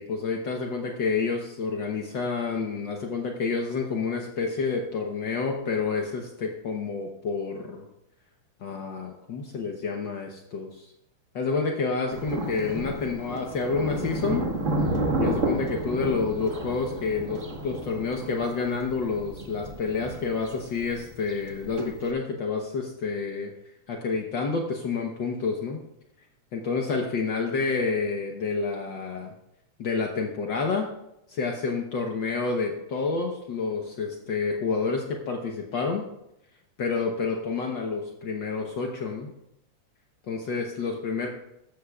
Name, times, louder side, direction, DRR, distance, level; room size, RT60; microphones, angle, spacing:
voice 1, 0.0-7.9 8.6-10.9 11.3-14.5 15.2-23.5 23.9-25.8 26.5-29.3 29.8-30.9 31.3-36.1 36.8-39.3 40.3-41.3, left 4 dB, 85° left, 1 dB, 1.0 m, -29 dB
Thunder, 12.1-22.1, right 1 dB, 50° right, 0.8 m, -31 dB
14.5 x 13.5 x 2.4 m, 0.85 s
omnidirectional pair, 3.5 m